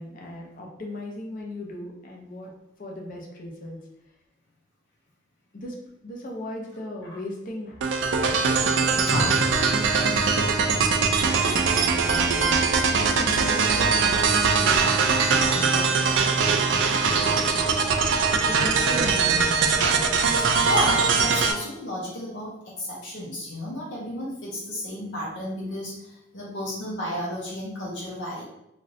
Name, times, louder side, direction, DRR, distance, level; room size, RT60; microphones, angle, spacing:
voice 1, 0.0-2.5 2.8-3.8 5.5-5.7 6.0-7.8 8.3-12.6 13.2-17.6 18.4-19.6, left 1 dB, 45° left, 0 dB, 0.6 m, -37 dB
sound 1, 7.8-21.5, right 5 dB, 75° right, 0.4 m, -22 dB
voice 2, 9.1-9.4 13.0-13.1 17.5-17.6 17.9-18.2 20.4-28.4, equal, 80° left, -6 dB, 0.8 m, -32 dB
3.1 x 2.5 x 2.6 m, 0.85 s
head